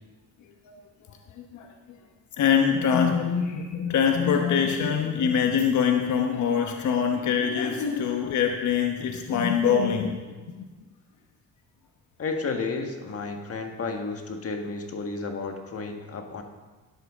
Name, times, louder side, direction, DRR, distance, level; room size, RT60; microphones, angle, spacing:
voice 1, 1.1-1.7 2.4-10.2 10.5-10.6, left 7 dB, 70° left, 3 dB, 1.1 m, -24 dB
voice 2, 12.2-16.4, left 4 dB, 50° left, 4 dB, 1.6 m, -32 dB
13.0 x 10.5 x 3.6 m, 1.3 s
cardioid pair, 90°, 30 cm